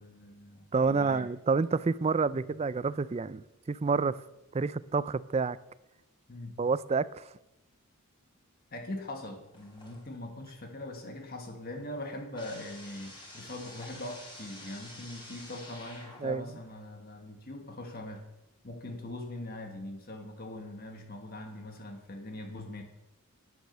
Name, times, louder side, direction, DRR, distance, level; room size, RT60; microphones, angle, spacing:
voice 1, 0.0-1.3 6.3-6.6 8.7-18.2 18.6-22.8, left 1 dB, 45° left, 1.5 m, -42 dB
voice 2, 0.7-4.1 4.5-5.6 6.6-7.3 16.2-16.4, right 4 dB, 30° right, 0.3 m, -28 dB
sound 1, 9.5-10.3 10.7-16.5, left 1 dB, 20° left, 4.6 m, -50 dB
11.0 x 9.6 x 6.6 m
head